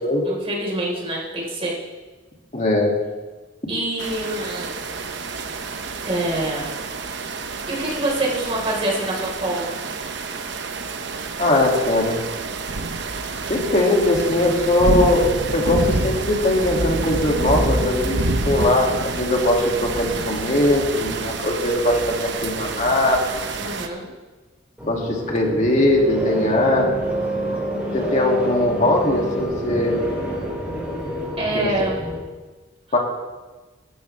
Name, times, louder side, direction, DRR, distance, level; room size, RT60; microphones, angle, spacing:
voice 1, 0.2-1.7 3.7-4.7 6.1-6.7 7.7-9.7 23.6-24.1 31.4-32.0, right 1 dB, 30° right, -4 dB, 4.4 m, -25 dB
voice 2, 2.5-2.9 11.4-12.2 13.5-23.4 24.9-26.9 27.9-30.0 31.5-31.7 32.9-33.0, left 1 dB, 35° left, -1 dB, 2.4 m, -20 dB
sound 1, 4.0-23.9, right 3 dB, 60° right, 0.9 m, -28 dB
sound 2, 24.8-32.2, right 1 dB, 10° right, 4.9 m, -27 dB
16.5 x 12.5 x 3.4 m, 1.2 s
head